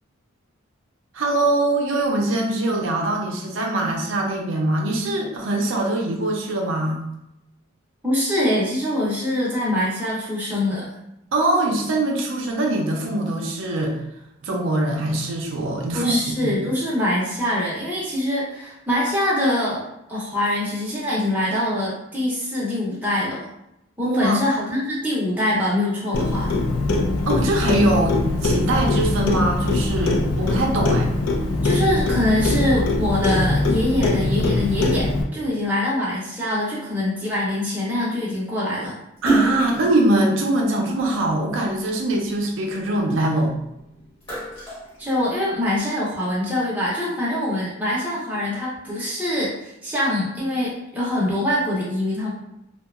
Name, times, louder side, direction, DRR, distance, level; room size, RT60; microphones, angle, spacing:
voice 1, 1.1-7.0 11.3-14.0 14.4-16.6 24.1-24.4 27.2-31.1 39.2-43.5, right 1 dB, 65° right, 0 dB, 0.4 m, -22 dB
voice 2, 8.0-10.9 15.9-19.8 20.1-23.5 24.0-26.5 31.6-38.9 45.0-52.3, left 1 dB, 10° right, -7 dB, 0.6 m, -24 dB
Clock, 26.1-35.2, left 2 dB, 85° left, 0.4 m, -22 dB
Splash splatter, 39.2-41.7 42.2-43.6 44.0-45.7, right 2 dB, 25° left, 0.9 m, -27 dB
2.7 x 2.2 x 2.3 m, 0.85 s
head